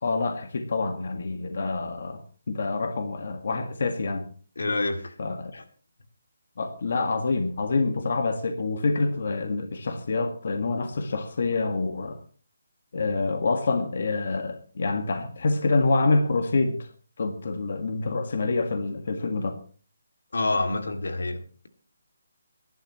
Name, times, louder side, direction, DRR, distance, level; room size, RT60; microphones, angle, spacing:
voice 1, 0.0-2.2 2.5-4.3 5.2-5.5 6.6-12.2 12.9-16.8 17.2-19.6, left 3 dB, 50° left, 7 dB, 1.8 m, -26 dB
voice 2, 4.6-5.1 5.5-5.6 20.3-21.4, left 2 dB, 85° left, 7 dB, 2.5 m, -27 dB
24.5 x 11.5 x 3.1 m, 0.39 s
hypercardioid pair, 175°, 0 cm